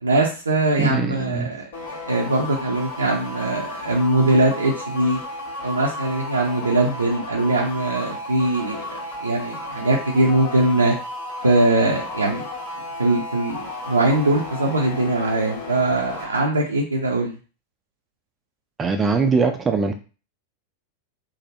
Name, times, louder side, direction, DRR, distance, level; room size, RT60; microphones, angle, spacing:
voice 1, 0.0-1.6 2.1-5.2 5.6-10.9 11.4-12.4 13.0-17.3, right 2 dB, 75° right, 0.5 m, -21 dB
voice 2, 0.8-1.5 18.8-19.9, right 4 dB, 20° right, 0.4 m, -21 dB
sound 1, 1.7-16.4, left 1 dB, 65° left, 1.0 m, -34 dB
3.3 x 2.0 x 2.5 m
figure-of-eight pair, 90°, 0 cm